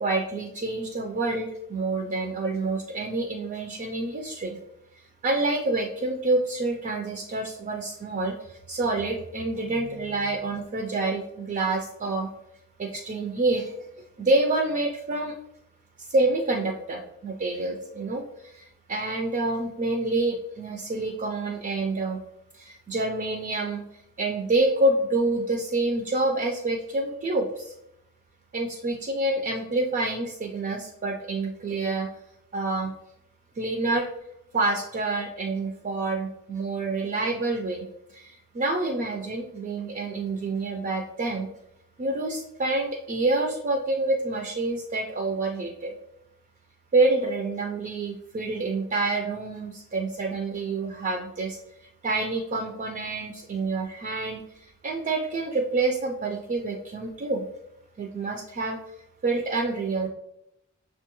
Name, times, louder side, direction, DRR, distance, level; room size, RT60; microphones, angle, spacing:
voice 1, 0.0-4.6 5.2-12.3 12.8-13.7 14.2-15.3 16.1-22.2 22.5-23.8 24.2-27.7 28.5-32.1 32.5-32.9 33.6-34.1 34.5-37.9 38.1-41.5 42.0-46.0 46.9-51.6 52.0-57.5 58.0-58.8 59.2-60.1, right 2 dB, 35° right, 2 dB, 0.3 m, -27 dB
6.2 x 2.2 x 2.9 m, 0.81 s
head